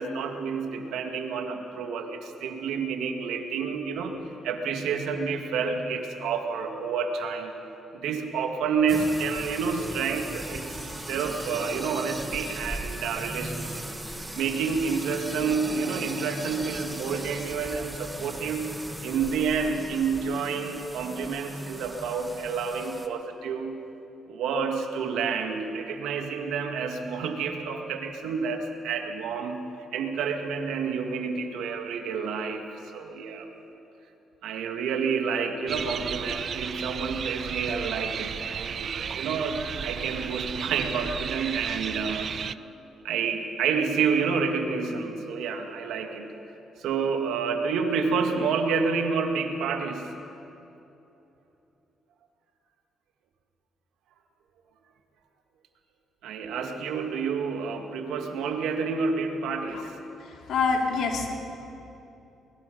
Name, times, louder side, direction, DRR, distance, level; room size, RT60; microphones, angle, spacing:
voice 1, 0.0-4.2 4.4-7.5 7.9-13.9 14.3-18.7 19.0-23.8 24.3-32.6 32.9-33.5 34.4-42.3 43.0-46.3 46.8-50.1 56.2-60.0, right 5 dB, 85° right, 4 dB, 2.0 m, -29 dB
sound 1, 8.9-23.1, right 1 dB, 10° right, 1.6 m, -38 dB
sound 2, 35.7-42.6, right 7 dB, 55° right, 0.5 m, -33 dB
voice 2, 60.2-61.3, left 4 dB, 75° left, 1 dB, 2.9 m, -27 dB
23.0 x 21.0 x 5.3 m, 3.0 s
cardioid pair, 90°, 0 cm